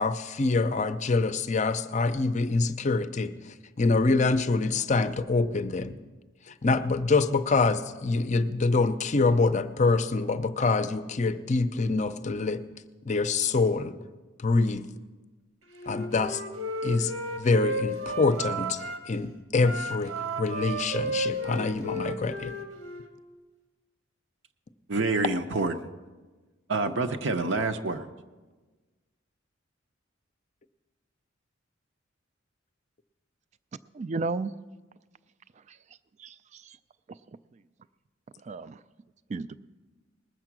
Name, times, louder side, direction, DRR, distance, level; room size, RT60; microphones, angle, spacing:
voice 1, 0.0-3.3 3.8-6.0 6.6-12.6 13.1-13.9 14.4-14.8 15.9-16.4 16.8-17.1 17.4-18.8 19.1-22.5, left 3 dB, 35° left, 12 dB, 0.5 m, -25 dB
Wind instrument woodwind instrument, 15.7-19.0 19.6-23.1, right 2 dB, 75° right, 1.4 m, -33 dB
voice 2, 24.9-25.8 26.7-28.1, right 3 dB, 60° right, 7 dB, 0.7 m, -27 dB
voice 3, 33.9-34.5 35.7-35.8 36.2-36.8 38.4-38.8 39.3-39.6, right 3 dB, 35° right, 15 dB, 0.3 m, -33 dB
19.5 x 7.5 x 6.0 m, 1.3 s
head